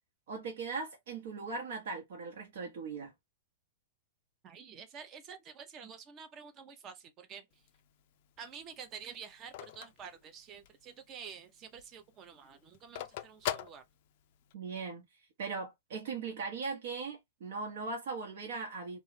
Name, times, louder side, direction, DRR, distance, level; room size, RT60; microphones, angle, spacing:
voice 1, 0.3-3.1 14.5-15.1 15.4-19.0, right 4 dB, 65° right, 0.8 m, -39 dB
voice 2, 4.4-7.5 8.4-13.8, right 7 dB, 30° right, 0.6 m, -49 dB
Telephone, 7.5-10.9 11.3-11.4 11.6-14.5, left 12 dB, 55° left, 0.3 m, -41 dB
2.2 x 2.0 x 3.1 m
hypercardioid pair, 125°, 0 cm